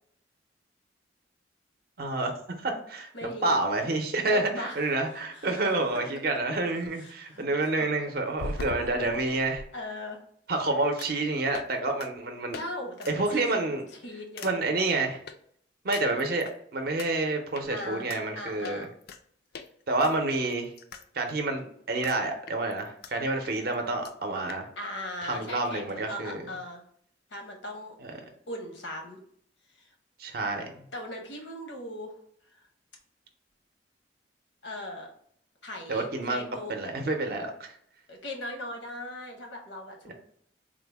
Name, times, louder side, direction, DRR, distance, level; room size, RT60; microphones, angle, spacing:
voice 1, 2.0-9.6 10.5-12.6 13.1-13.8 14.4-15.2 15.8-18.9 19.9-20.7 21.1-24.7 25.2-26.5 28.0-28.1 30.2-30.9 35.9-37.7 40.1-40.2, right 2 dB, 55° right, 4 dB, 0.5 m, -29 dB
voice 2, 3.1-3.6 4.3-4.9 5.3-5.8 7.0-7.5 8.4-8.6 9.7-10.2 12.5-13.4 14.0-14.7 17.7-18.1 18.3-18.9 24.8-26.8 27.3-28.0 28.5-29.2 29.8-29.9 30.9-32.1 34.6-35.1 35.6-36.7 38.1-40.1, left 1 dB, 80° left, 3 dB, 0.8 m, -39 dB
sound 1, 8.4-9.7 11.0-11.2 11.5-11.7 12.0-12.1 12.5-12.7 13.0-13.1 13.5-13.8 14.4-14.5 15.3-15.4 15.9-16.6 17.0-17.1 17.5-17.7 18.1-18.2 18.6-19.2 19.5-19.7 20.0-21.0 21.3-21.4 22.0-22.2 22.5-23.1 23.4-23.5 23.7-23.8 24.0-24.1 24.5-24.6, left 3 dB, 55° left, 0.3 m, -40 dB
3.6 x 2.0 x 3.3 m, 0.65 s
head